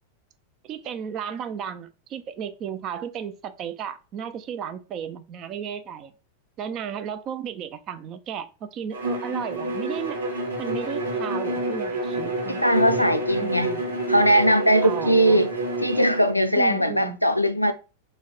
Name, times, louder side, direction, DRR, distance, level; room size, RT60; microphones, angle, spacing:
voice 1, 0.6-6.1 6.6-10.2 10.6-13.1 13.4-13.8 14.8-15.4 16.5-17.2, right 8 dB, 35° right, 0.4 m, -34 dB
Bowed string instrument, 8.9-16.3, right 1 dB, 70° right, 0.9 m, -28 dB
voice 2, 12.5-13.7 14.1-15.5 15.8-17.7, right 1 dB, 90° left, 0.3 m, -20 dB
3.2 x 2.2 x 3.9 m
figure-of-eight pair, 90°, 0 cm